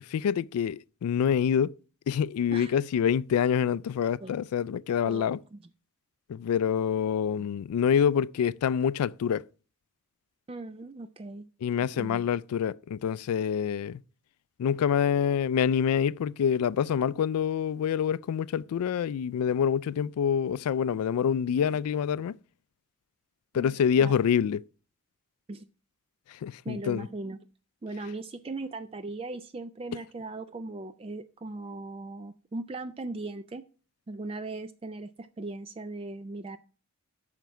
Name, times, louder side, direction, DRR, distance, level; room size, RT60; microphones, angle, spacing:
voice 1, 0.1-1.8 2.1-5.4 6.3-9.5 11.6-14.0 14.6-22.3 23.5-24.6 26.3-27.1, left 8 dB, 80° left, 0.3 m, -26 dB
voice 2, 5.0-5.6 7.4-7.5 10.5-11.5 12.0-12.2 23.5-23.7 24.0-24.1 25.5-25.7 26.6-27.4 27.8-33.6 34.1-36.6, right 2 dB, 25° right, 0.3 m, -38 dB
9.1 x 5.9 x 4.6 m
head